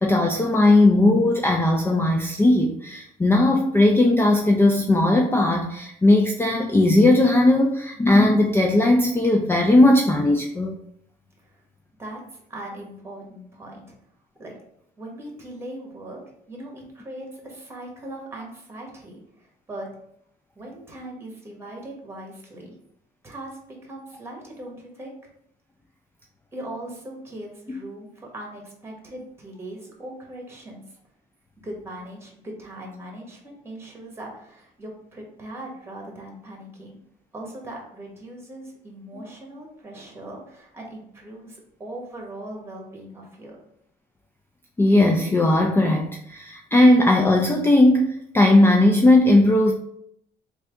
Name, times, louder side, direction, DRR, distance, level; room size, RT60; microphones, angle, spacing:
voice 1, 0.0-10.7 44.8-49.7, left 1 dB, 15° left, 1 dB, 0.4 m, -18 dB
voice 2, 12.0-13.9 14.4-14.6 15.0-16.2 16.5-19.9 20.5-22.7 23.2-25.1 26.5-31.0 31.6-37.0 37.3-43.6, right 1 dB, 15° right, 0 dB, 1.3 m, -39 dB
3.3 x 2.7 x 3.5 m, 0.72 s
cardioid pair, 110°, 17 cm